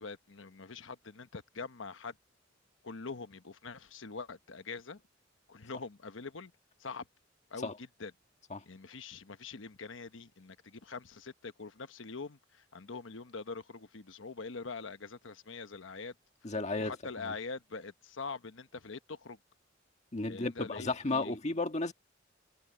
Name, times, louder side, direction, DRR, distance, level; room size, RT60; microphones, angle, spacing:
voice 1, 0.0-2.1 2.8-5.0 5.5-6.5 6.8-7.1 7.5-8.1 8.6-16.1 16.8-19.4 20.2-21.4, left 4 dB, 80° left, 1.1 m, -44 dB
voice 2, 16.4-16.9 17.2-17.3 20.1-21.9, left 2 dB, 35° left, 1.6 m, -33 dB
head